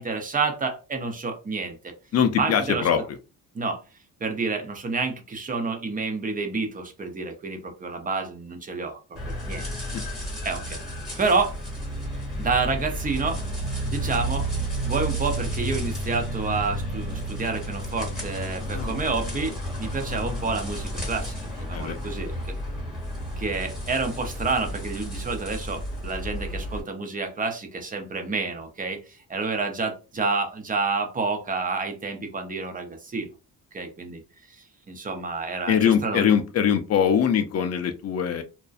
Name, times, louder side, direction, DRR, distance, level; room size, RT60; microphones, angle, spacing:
voice 1, 0.0-2.0 2.4-2.9 3.5-3.8 4.2-9.0 9.3-9.7 10.4-10.8 11.2-11.6 12.4-13.4 13.9-14.5 14.8-22.3 23.4-33.3 33.7-34.2 34.6-36.3, right 4 dB, 20° right, 5 dB, 0.5 m, -29 dB
voice 2, 2.1-3.0 9.9-10.0 18.6-19.0 19.8-19.9 21.7-22.0 35.7-38.4, left 8 dB, 45° left, 9 dB, 0.4 m, -22 dB
sound 1, 9.2-26.8, right 1 dB, ahead, 1.2 m, -31 dB
2.6 x 2.1 x 2.4 m, 0.31 s
cardioid pair, 125°, 38 cm